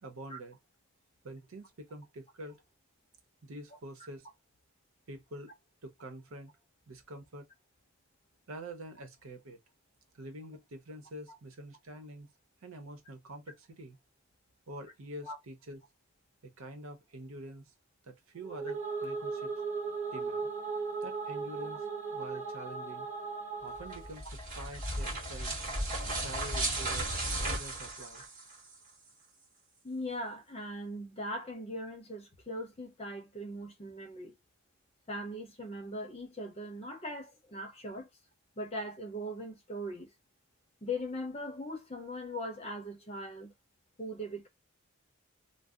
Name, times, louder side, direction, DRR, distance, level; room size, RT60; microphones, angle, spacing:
voice 1, 0.0-0.6 1.2-2.6 3.4-4.3 5.1-5.5 5.8-6.5 6.9-7.4 8.5-9.6 10.1-12.3 12.6-14.0 14.7-15.8 16.6-17.7 18.0-19.5 20.1-20.5 21.0-21.8 22.1-23.1 23.6-24.3 24.6-25.5 26.2-28.2, right 1 dB, 85° right, 0.8 m, -46 dB
sound 1, 18.4-24.2, right 4 dB, 60° right, 1.6 m, -37 dB
sound 2, 23.8-28.7, right 1 dB, 40° right, 1.5 m, -35 dB
voice 2, 29.8-34.3 35.1-38.1 38.6-40.1 40.8-43.5 44.0-44.5, equal, 30° left, 0.7 m, -40 dB
2.6 x 2.0 x 3.6 m
head